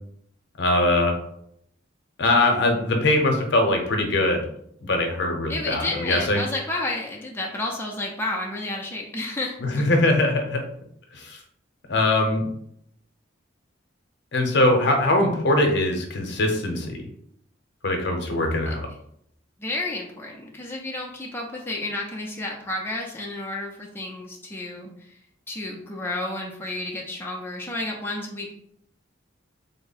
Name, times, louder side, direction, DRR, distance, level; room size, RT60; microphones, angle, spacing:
voice 1, 0.6-1.2 2.2-4.4 4.8-6.4 9.6-10.6 11.1-11.4 11.9-12.5 14.3-17.0 17.8-18.8, left 2 dB, 60° left, 3 dB, 0.7 m, -22 dB
voice 2, 5.5-9.8 18.7-18.8 19.6-25.2 25.5-28.5, left 2 dB, 10° left, -1 dB, 0.4 m, -31 dB
3.5 x 2.0 x 4.0 m, 0.70 s
head